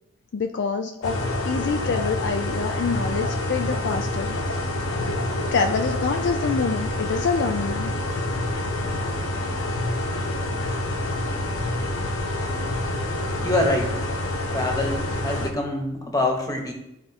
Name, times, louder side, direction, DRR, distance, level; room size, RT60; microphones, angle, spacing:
voice 1, 0.3-1.2 1.5-4.7 5.5-7.9, left 5 dB, 55° left, 5 dB, 0.4 m, -26 dB
sound 1, 1.0-15.5, left 1 dB, 70° left, 1.0 m, -27 dB
voice 2, 13.4-14.0 14.5-16.7, left 2 dB, 15° left, 2 dB, 1.1 m, -25 dB
11.5 x 4.3 x 2.9 m, 0.87 s
head